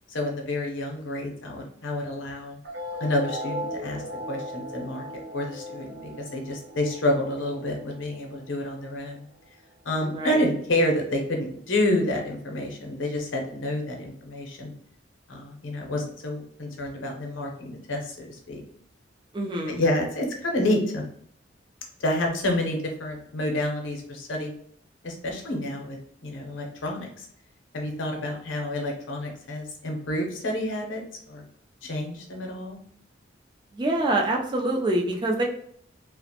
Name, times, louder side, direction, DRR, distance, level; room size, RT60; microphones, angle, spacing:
voice 1, 0.1-2.6 3.0-4.0 4.3-5.0 5.3-6.0 6.3-9.2 9.8-14.7 15.3-18.6 19.7-21.0 22.0-24.5 25.0-27.2 27.7-31.4 31.8-32.8, left 1 dB, 85° left, 1 dB, 0.6 m, -29 dB
sound 1, 2.6-9.6, equal, 65° right, 0.6 m, -38 dB
voice 2, 19.3-19.8 33.7-35.4, right 1 dB, 25° right, 1 dB, 0.3 m, -25 dB
2.4 x 2.0 x 2.7 m, 0.64 s
head